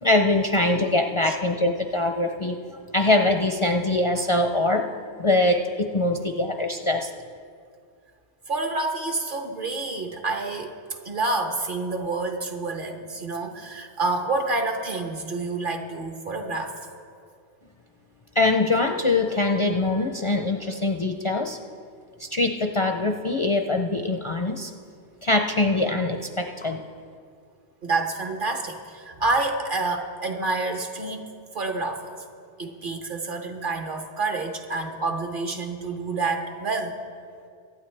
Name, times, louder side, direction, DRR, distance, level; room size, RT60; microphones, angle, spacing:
voice 1, 0.0-4.9 5.2-7.1 18.4-21.6 22.2-24.7 25.2-26.8, left 2 dB, 40° left, 4 dB, 0.5 m, -23 dB
voice 2, 8.5-10.7 11.0-16.8 27.8-31.2 31.5-32.1 32.6-37.0, right 3 dB, 55° right, 4 dB, 1.2 m, -28 dB
23.5 x 8.8 x 3.3 m, 2.2 s
omnidirectional pair, 1.0 m